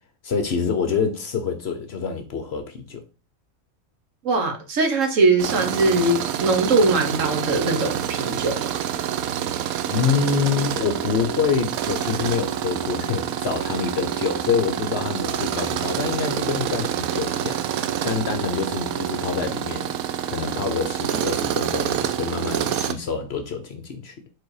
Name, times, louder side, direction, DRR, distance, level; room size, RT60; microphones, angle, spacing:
voice 1, 0.2-3.0 9.9-17.6 18.0-19.9 20.3-24.1, left 6 dB, 55° left, 0.9 m, -26 dB
voice 2, 4.2-8.7, right 3 dB, 65° right, 1.5 m, -21 dB
Tools, 5.4-22.9, right 10 dB, 85° right, 1.0 m, -27 dB
4.9 x 4.1 x 4.8 m
omnidirectional pair, 1.5 m